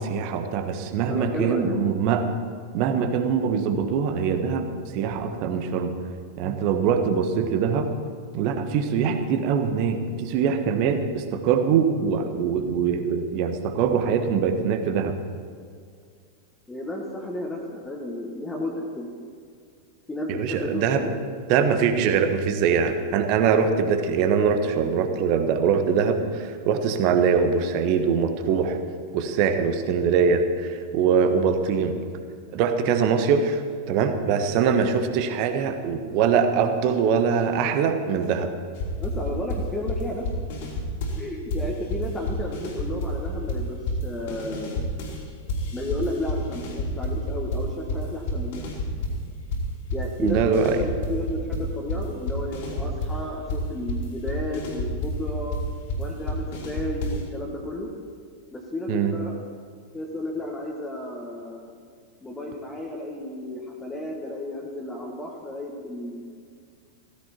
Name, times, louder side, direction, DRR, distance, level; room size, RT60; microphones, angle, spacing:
voice 1, 0.0-2.3 2.7-4.7 4.9-6.0 6.4-7.9 8.3-15.2 20.3-21.1 21.5-28.8 29.1-32.0 32.5-38.5 50.2-50.8 58.9-59.1, right 6 dB, 45° right, 7 dB, 1.4 m, -23 dB
voice 2, 1.0-1.8 16.7-19.1 20.1-21.1 39.0-40.3 41.1-43.8 44.0-44.8 45.7-48.7 49.9-55.6 56.0-57.9 58.5-59.3 59.9-61.7 62.2-66.3, left 1 dB, 10° left, -2 dB, 1.9 m, -32 dB
sound 1, 38.8-41.2 41.5-45.2 45.5-49.2 49.5-57.3, left 1 dB, 55° left, 3.3 m, -29 dB
16.5 x 15.0 x 4.5 m, 2.2 s
figure-of-eight pair, 90°, 0 cm